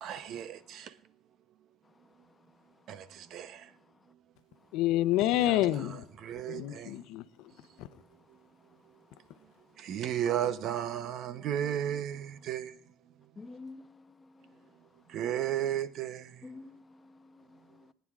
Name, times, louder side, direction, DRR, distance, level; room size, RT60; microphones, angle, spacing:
voice 1, 0.0-0.9 2.9-3.7 5.4-5.6 6.2-6.9 9.8-12.8 15.1-16.5, right 10 dB, 70° right, 0.8 m, -34 dB
voice 2, 4.7-6.1 6.5-7.5 7.8-7.9, left 14 dB, 85° left, 0.6 m, -28 dB
voice 3, 13.4-14.6 16.4-17.9, left 3 dB, 30° left, 0.8 m, -50 dB
25.5 x 9.4 x 2.4 m
supercardioid pair, 80°, 0 cm